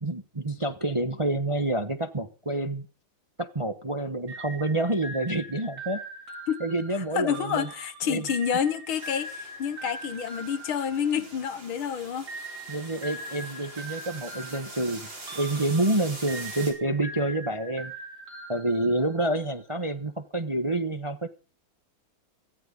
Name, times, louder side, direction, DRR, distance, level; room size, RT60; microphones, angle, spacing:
voice 1, 0.0-2.9 3.4-6.0 6.6-7.7 8.1-8.2 12.7-15.1 15.3-17.9 18.5-21.3, right 1 dB, 20° right, 0.8 m, -28 dB
sound 1, 4.3-11.7 12.3-19.5, right 2 dB, 45° right, 4.4 m, -42 dB
voice 2, 6.5-12.3, left 8 dB, 75° left, 2.0 m, -29 dB
sound 2, 8.9-16.7, right 2 dB, 60° right, 5.1 m, -44 dB
18.0 x 15.0 x 3.9 m
omnidirectional pair, 2.3 m